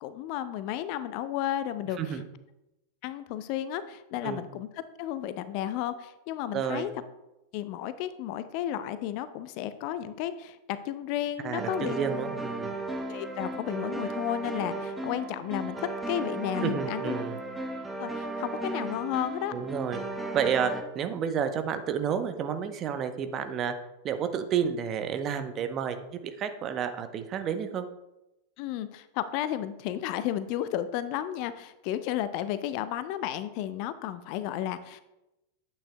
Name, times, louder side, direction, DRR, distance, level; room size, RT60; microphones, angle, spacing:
voice 1, 0.0-2.2 3.0-4.7 5.0-6.9 7.5-12.0 13.1-17.2 18.0-19.5 28.6-35.0, left 11 dB, 45° left, 13 dB, 0.5 m, -33 dB
voice 2, 6.5-6.9 11.4-12.8 16.6-17.4 19.5-20.0 20.3-23.7 24.0-27.8, right 7 dB, 30° right, 8 dB, 0.8 m, -30 dB
sound 1, 11.6-20.8, right 2 dB, 5° right, 1.2 m, -35 dB
10.0 x 8.7 x 2.2 m, 0.93 s
figure-of-eight pair, 90°, 0 cm